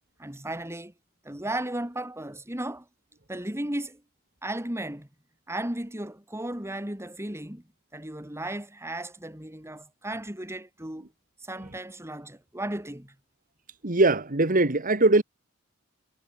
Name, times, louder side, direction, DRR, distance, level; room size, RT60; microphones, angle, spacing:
voice 1, 0.2-0.9 1.2-2.9 3.3-4.0 4.4-5.1 5.5-7.6 7.9-11.1 11.4-13.2, right 1 dB, 15° right, 3.5 m, -35 dB
voice 2, 13.8-15.2, right 2 dB, 40° right, 1.8 m, -21 dB
head